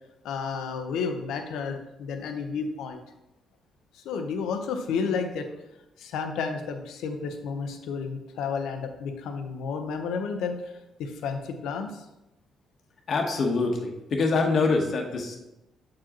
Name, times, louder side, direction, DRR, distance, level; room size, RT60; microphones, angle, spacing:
voice 1, 0.2-3.0 3.9-5.5 6.0-12.1, left 5 dB, 85° left, 5 dB, 0.7 m, -31 dB
voice 2, 13.1-15.4, left 3 dB, 55° left, 2 dB, 1.1 m, -25 dB
7.4 x 4.8 x 3.0 m, 0.92 s
cardioid pair, 90°, 0 cm